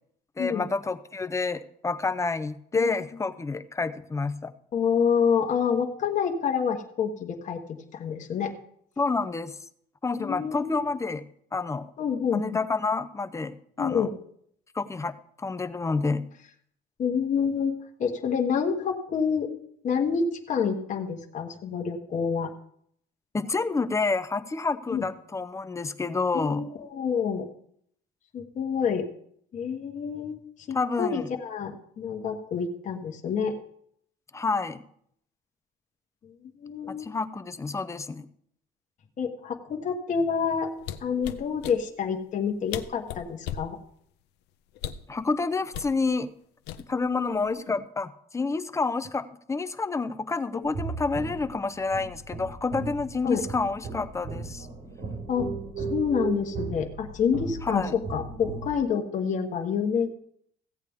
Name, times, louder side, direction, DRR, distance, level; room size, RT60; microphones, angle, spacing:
voice 1, 0.4-4.5 9.0-9.5 10.0-11.2 11.5-11.9 12.3-14.1 14.7-16.2 23.3-26.6 30.7-31.3 34.3-34.8 36.9-38.3 45.1-46.3 46.9-54.7 57.6-58.0, left 4 dB, 15° left, 12 dB, 0.6 m, -29 dB
voice 2, 4.7-7.6 7.9-8.5 10.2-10.8 12.0-12.6 13.8-14.1 17.0-17.7 18.0-19.5 19.8-22.5 24.9-25.0 26.3-27.5 28.3-29.0 29.5-30.4 30.7-33.5 36.6-37.1 39.2-40.7 41.0-43.8 53.2-53.4 55.3-55.5 55.8-60.1, left 6 dB, 45° left, 3 dB, 1.2 m, -27 dB
sound 1, 40.8-41.8 42.4-42.5 42.7-43.7 44.8-45.1 45.7-46.0 46.7-47.1 47.5-47.8, left 10 dB, 85° left, 0.6 m, -36 dB
sound 2, 50.6-58.7, right 4 dB, 70° right, 5.0 m, -36 dB
15.5 x 8.3 x 3.6 m, 0.68 s
cardioid pair, 110°, 17 cm